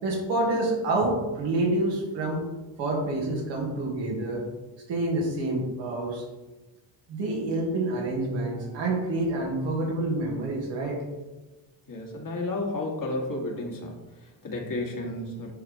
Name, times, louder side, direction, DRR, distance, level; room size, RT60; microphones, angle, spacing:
voice 1, 0.0-2.4 2.8-4.5 4.9-6.2 7.1-11.0, right 2 dB, 85° right, -3 dB, 2.4 m, -27 dB
voice 2, 11.9-15.5, left 2 dB, 50° left, 0 dB, 2.0 m, -32 dB
10.5 x 4.1 x 3.5 m, 1.1 s
supercardioid pair, 65°, 44 cm